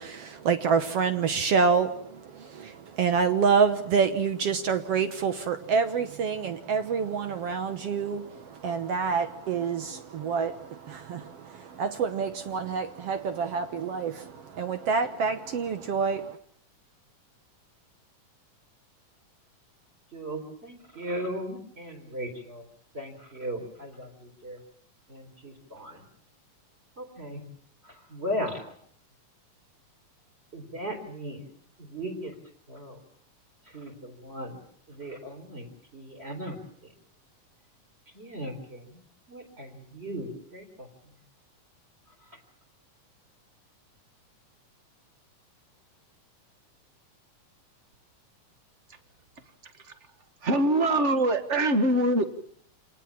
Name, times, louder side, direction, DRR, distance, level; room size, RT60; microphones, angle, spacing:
voice 1, 0.0-16.4, right 5 dB, 60° right, 10 dB, 1.8 m, -27 dB
voice 2, 20.1-22.6 22.9-24.6 25.1-26.0 27.0-27.4 27.8-28.6 30.5-31.5 31.8-32.3 32.7-33.0 33.7-34.6 34.9-36.6 38.1-39.0 39.3-40.9, equal, 20° right, 3 dB, 4.2 m, -37 dB
voice 3, 50.4-52.2, right 1 dB, 40° right, 10 dB, 1.0 m, -23 dB
27.5 x 19.5 x 7.3 m, 0.62 s
omnidirectional pair, 3.7 m